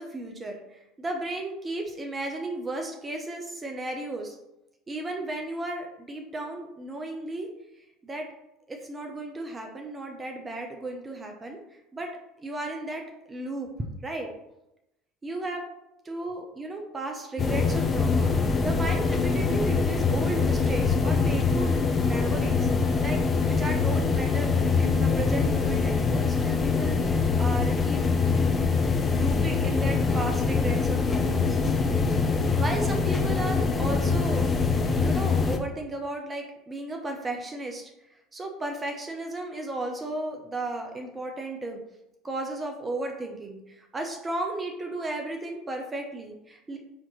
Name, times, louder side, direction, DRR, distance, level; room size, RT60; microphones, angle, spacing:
voice 1, 0.0-4.4 4.9-7.5 8.0-8.3 8.7-12.1 12.4-13.0 13.3-13.7 14.0-14.3 15.2-15.6 16.1-18.3 18.6-28.0 28.3-28.4 29.1-31.6 32.6-34.5 35.0-37.9 38.3-41.8 42.2-46.8, right 2 dB, 20° right, 2 dB, 0.7 m, -34 dB
sound 1, 17.4-35.6, left 4 dB, 30° left, 0.6 m, -24 dB
4.3 x 2.9 x 4.0 m, 0.87 s
figure-of-eight pair, 65°, 0 cm